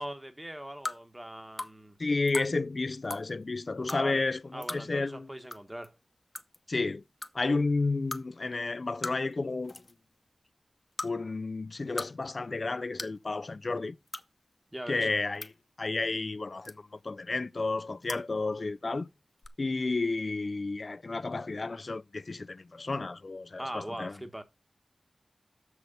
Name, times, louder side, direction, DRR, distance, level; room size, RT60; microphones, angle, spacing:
voice 1, 0.0-2.0 3.9-4.3 4.5-6.0 14.7-15.1 23.6-24.4, right 1 dB, 15° right, 1.4 m, -40 dB
sound 1, 0.8-1.0 1.6-1.7 2.3-2.5 3.0-3.2 3.9-4.0 4.6-4.8 5.5-5.6 5.8-5.9 6.3-6.6 7.2-7.3 8.1-8.2 9.0-9.3 9.6-9.9 10.9-11.1 11.7-12.1 12.4-12.5 13.0-13.2 14.1-14.2 15.1-15.5 16.6-17.0 18.0-18.2 19.4-19.5, left 2 dB, 40° left, 0.9 m, -37 dB
voice 2, 2.0-5.3 6.7-7.0 7.3-9.8 11.0-14.0 14.9-15.5 15.8-16.8 17.0-19.1 19.6-24.1, left 3 dB, 55° left, 0.4 m, -31 dB
6.7 x 6.3 x 5.4 m
wide cardioid pair, 55°, 0 cm